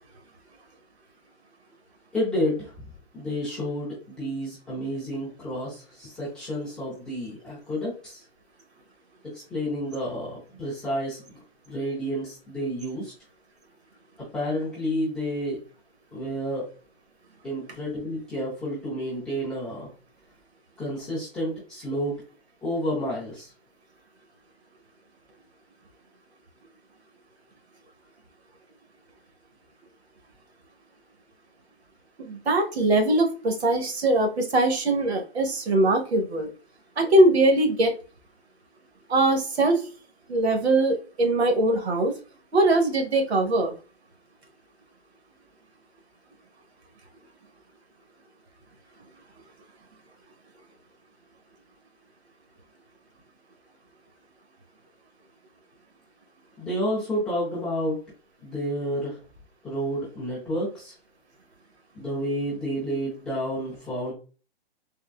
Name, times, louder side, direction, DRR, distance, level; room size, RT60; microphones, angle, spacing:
voice 1, 2.1-2.9 3.1-8.2 9.3-11.2 11.7-13.1 14.3-15.6 16.1-16.7 17.4-19.9 20.8-22.2 22.6-23.5 56.6-58.0 58.4-59.2 59.6-60.9 61.9-64.1, equal, ahead, -11 dB, 0.3 m, -30 dB
voice 2, 32.2-36.5 37.0-37.9 39.1-39.8 40.3-42.2 42.5-43.7, right 2 dB, 85° right, 4 dB, 1.0 m, -21 dB
3.5 x 2.2 x 2.2 m, 0.36 s
hypercardioid pair, 140°, 31 cm